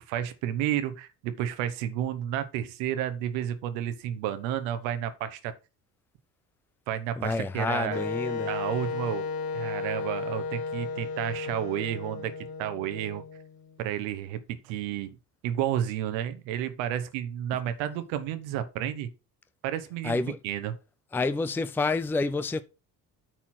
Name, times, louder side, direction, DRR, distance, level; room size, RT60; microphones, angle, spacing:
voice 1, 0.0-5.5 6.9-8.0 8.4-9.3 9.5-12.3 12.6-13.2 13.8-15.2 15.4-19.1 19.6-20.7, right 11 dB, 65° right, 1.2 m, -31 dB
voice 2, 7.2-8.5 20.0-20.4 21.1-22.6, left 3 dB, 5° left, 0.5 m, -28 dB
Wind instrument woodwind instrument, 7.9-13.7, left 4 dB, 45° left, 1.4 m, -34 dB
9.0 x 4.3 x 5.9 m
figure-of-eight pair, 55°, 50 cm